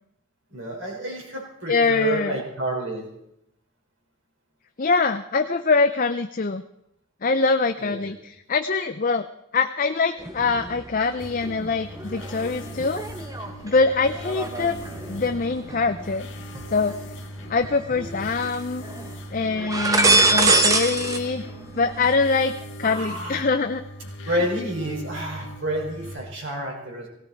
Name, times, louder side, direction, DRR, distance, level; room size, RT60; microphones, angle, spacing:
voice 1, 0.5-3.1 7.8-8.1 22.8-23.4 24.2-27.1, right 1 dB, 55° right, -1 dB, 5.8 m, -29 dB
voice 2, 1.7-2.4 4.8-6.6 7.2-9.3 9.5-13.0 13.6-14.8 15.1-16.3 16.7-16.9 17.5-18.8 19.3-21.4 21.8-22.5 22.8-23.8 24.3-24.4, left 4 dB, 40° left, 8 dB, 0.5 m, -23 dB
sound 1, 10.2-11.0 11.4-17.0 17.6-18.5 18.8-19.1 19.5-21.2 21.5-22.1, right 2 dB, 15° right, 1.0 m, -25 dB
sound 2, 11.2-26.2, equal, 55° left, 1.9 m, -39 dB
18.5 x 17.5 x 4.5 m, 0.78 s
head